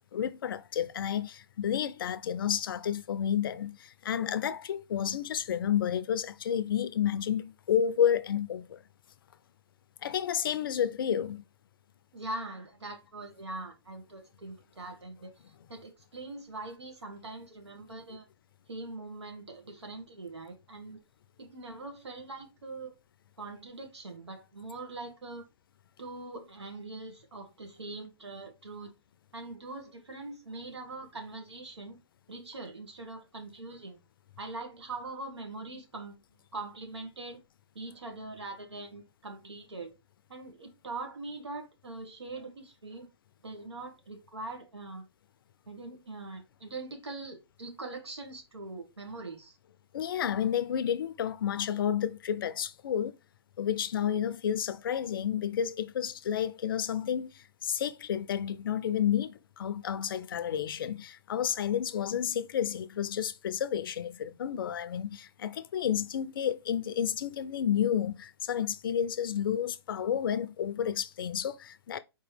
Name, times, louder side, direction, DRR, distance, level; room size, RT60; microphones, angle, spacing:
voice 1, 0.1-8.8 10.0-11.4 49.9-53.2 53.6-72.0, left 9 dB, 55° left, 0.4 m, -31 dB
voice 2, 12.1-15.3 15.7-18.2 18.7-21.0 21.4-22.9 23.4-25.4 26.0-29.0 29.3-32.0 32.3-34.0 34.4-36.2 36.5-37.4 37.7-39.9 40.3-43.1 43.4-45.1 45.7-49.6, right 2 dB, 85° right, 1.5 m, -42 dB
4.4 x 2.9 x 3.3 m
hypercardioid pair, 140°, 14 cm